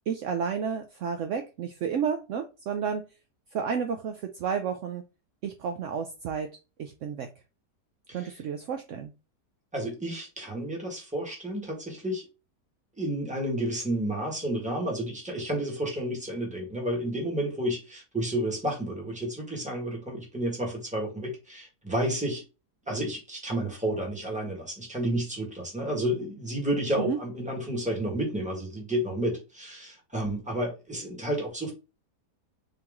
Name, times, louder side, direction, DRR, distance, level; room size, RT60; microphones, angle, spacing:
voice 1, 0.1-3.1 3.5-5.0 5.4-6.5 6.8-7.3 8.1-9.1 27.0-27.2, right 7 dB, 75° right, 0.7 m, -31 dB
voice 2, 9.7-12.2 13.0-22.4 22.9-31.7, right 1 dB, 5° right, 1.3 m, -31 dB
3.8 x 2.9 x 3.5 m
omnidirectional pair, 1.8 m